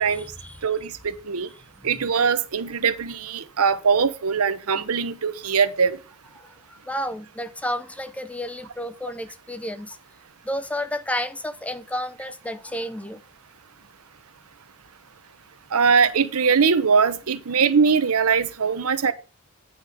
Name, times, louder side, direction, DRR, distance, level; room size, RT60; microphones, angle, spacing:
voice 1, 0.0-0.7 1.8-2.1 6.4-10.0 10.4-13.2, left 1 dB, 5° left, 0.5 m, -32 dB
voice 2, 0.6-1.5 1.8-6.0 15.7-19.1, right 5 dB, 85° right, 0.8 m, -21 dB
9.6 x 4.9 x 5.2 m
head